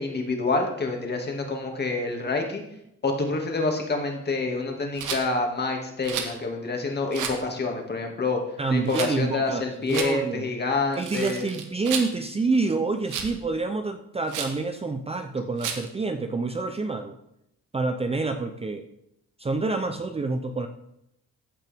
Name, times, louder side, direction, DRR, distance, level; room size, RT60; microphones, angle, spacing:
voice 1, 0.0-2.6 3.0-8.4 8.7-11.6, left 3 dB, 35° left, 2 dB, 2.2 m, -27 dB
Rattle, 5.0-5.2 6.0-6.4 7.1-7.4 8.9-9.1 9.9-10.1 10.9-12.1 13.1-13.4 14.3-14.6 15.6-15.9, right 7 dB, 90° right, 1.3 m, -32 dB
voice 2, 8.6-10.5 11.0-17.2 17.7-18.8 19.4-20.7, right 3 dB, 20° right, 6 dB, 0.6 m, -27 dB
15.0 x 5.4 x 3.5 m, 0.81 s
cardioid pair, 90°, 30 cm